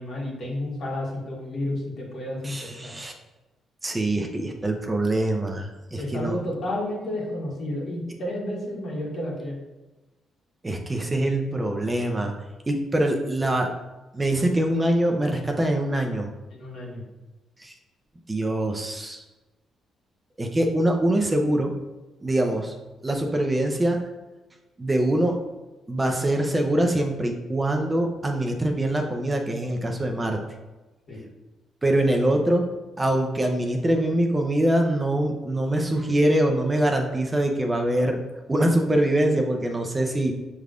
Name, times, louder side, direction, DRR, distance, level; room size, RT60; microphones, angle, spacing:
voice 1, 0.0-3.0 5.9-9.6 16.5-17.0 31.1-31.3, left 1 dB, 60° left, -3 dB, 1.5 m, -31 dB
voice 2, 2.4-3.1 3.8-6.4 10.6-12.3 12.7-13.7 14.1-16.3 17.6-17.7 18.3-19.2 20.4-21.7 22.2-22.7 23.0-24.0 24.8-25.4 25.9-30.4 31.8-32.7 33.0-38.2 38.5-40.3, right 1 dB, 20° right, 3 dB, 0.5 m, -24 dB
6.2 x 3.4 x 2.4 m, 1.1 s
cardioid pair, 90°, 0 cm